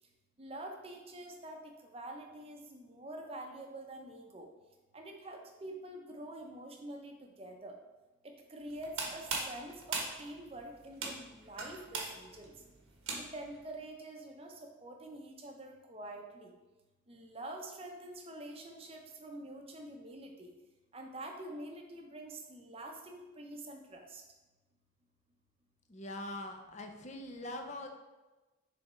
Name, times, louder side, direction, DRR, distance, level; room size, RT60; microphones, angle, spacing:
voice 1, 0.4-4.5 4.9-7.8 8.2-12.5 13.2-14.5 14.8-16.5 17.1-20.5 20.9-24.2, right 1 dB, 30° right, 2 dB, 0.7 m, -46 dB
sound 1, 8.7-13.6, right 3 dB, 75° right, 1.2 m, -40 dB
voice 2, 25.9-27.9, left 1 dB, 35° left, 4 dB, 0.6 m, -43 dB
6.7 x 3.5 x 4.3 m, 1.1 s
head